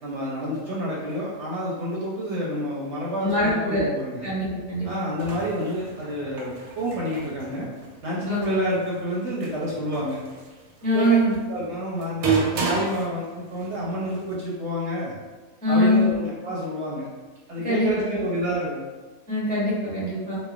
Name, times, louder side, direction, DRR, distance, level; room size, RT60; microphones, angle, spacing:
voice 1, 0.0-4.3 4.8-7.7 8.0-10.2 10.9-11.2 11.5-15.1 15.7-17.1 17.5-18.8, equal, 65° right, -5 dB, 0.8 m, -29 dB
voice 2, 3.2-3.9 4.2-4.9 8.3-8.4 10.8-11.3 15.6-16.1 17.6-17.9 19.3-20.4, left 1 dB, 10° left, -9 dB, 0.5 m, -22 dB
sound 1, 5.0-14.4, right 5 dB, 85° right, 1.0 m, -32 dB
3.0 x 2.1 x 2.3 m, 1.3 s
omnidirectional pair, 1.5 m